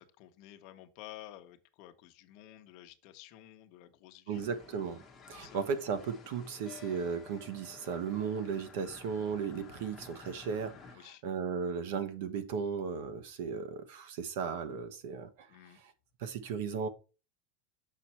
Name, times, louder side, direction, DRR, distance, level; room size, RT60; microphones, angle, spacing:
voice 1, 0.0-4.4 5.4-5.6 10.9-11.2 15.5-15.8, left 13 dB, 45° left, 0.9 m, -52 dB
sound 1, 4.3-11.0, left 5 dB, 10° left, 1.3 m, -53 dB
voice 2, 4.3-5.0 5.3-15.5 15.7-15.9 16.2-16.9, right 6 dB, 60° right, 1.1 m, -36 dB
6.7 x 5.7 x 4.3 m
supercardioid pair, 170°, 0 cm